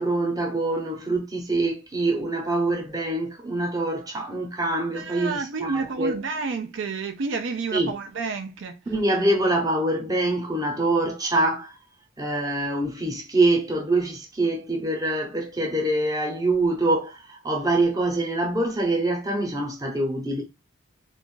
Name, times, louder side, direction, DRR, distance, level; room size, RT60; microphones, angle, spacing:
voice 1, 0.0-6.2 7.7-7.9 8.9-11.7 12.2-20.4, right 2 dB, 20° right, 0.8 m, -25 dB
voice 2, 4.9-8.8, right 4 dB, 70° right, 0.4 m, -30 dB
2.5 x 2.3 x 3.7 m
head